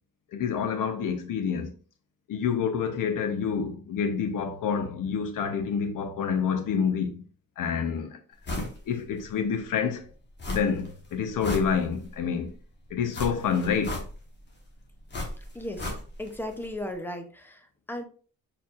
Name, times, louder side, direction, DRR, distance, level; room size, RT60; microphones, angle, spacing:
voice 1, 0.3-1.7 2.3-7.2 7.6-8.2 8.9-10.0 10.5-12.5 12.9-14.0, left 6 dB, 70° left, 0.9 m, -28 dB
sound 1, 8.4-8.8 9.2-9.3 10.4-10.9 11.2-12.2 13.1-14.4 15.1-16.4 16.6-16.7, left 1 dB, 30° left, 1.3 m, -34 dB
voice 2, 15.4-18.0, left 1 dB, 5° left, 0.6 m, -37 dB
4.5 x 4.3 x 2.4 m
wide cardioid pair, 140°, 34 cm